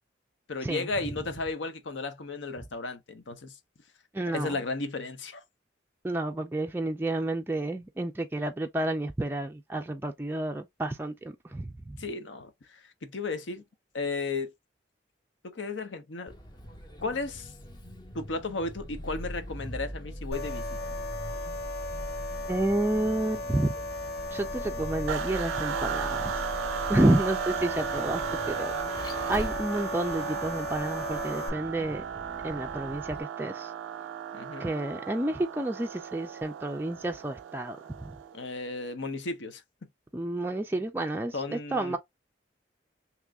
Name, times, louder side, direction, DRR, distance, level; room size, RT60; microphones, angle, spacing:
voice 1, 0.5-3.5 4.3-5.4 12.0-13.6 13.9-14.5 15.5-16.3 17.0-17.5 18.1-20.9 34.3-34.7 38.3-39.6 41.3-42.0, left 3 dB, 80° left, 0.7 m, -34 dB
voice 2, 4.1-4.6 6.0-12.0 22.5-23.7 24.3-26.4 26.9-28.2 28.5-28.7 29.3-32.0 32.4-33.7 34.6-37.8 38.0-38.1 40.1-42.0, right 1 dB, 10° right, 0.3 m, -30 dB
Vehicle, 16.3-33.2, equal, 25° left, 0.7 m, -41 dB
sound 1, 20.3-31.5, left 2 dB, 60° left, 1.0 m, -37 dB
sound 2, 25.1-38.5, right 8 dB, 90° right, 0.3 m, -36 dB
3.0 x 2.5 x 3.4 m
head